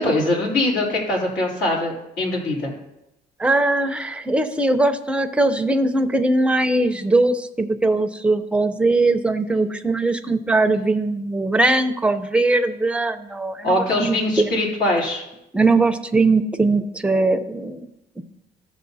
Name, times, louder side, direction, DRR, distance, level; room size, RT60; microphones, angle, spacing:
voice 1, 0.0-2.7 13.6-15.2, left 1 dB, 65° left, -2 dB, 3.2 m, -22 dB
voice 2, 3.4-14.5 15.5-17.9, right 2 dB, 5° right, 7 dB, 0.7 m, -20 dB
15.0 x 6.3 x 2.7 m, 0.87 s
cardioid pair, 110°, 17 cm